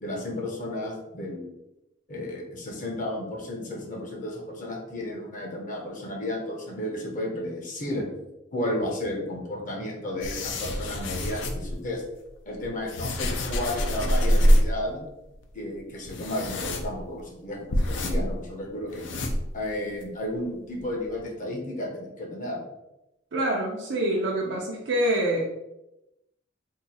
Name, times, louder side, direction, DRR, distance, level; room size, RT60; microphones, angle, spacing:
voice 1, 0.0-1.5 2.1-8.0 8.5-12.0 12.5-15.0 15.5-19.1 19.5-22.6, left 1 dB, 45° left, 0 dB, 0.7 m, -33 dB
sound 1, 10.2-11.8 12.5-14.8 15.1-15.2 15.4-15.6 16.1-17.2 17.7-18.4 18.8-19.7 20.0-20.1 20.8-20.9 21.1-21.2, equal, 85° left, 0.5 m, -25 dB
voice 2, 23.3-25.5, right 1 dB, 80° right, -3 dB, 0.5 m, -26 dB
2.7 x 2.3 x 4.1 m, 0.91 s
head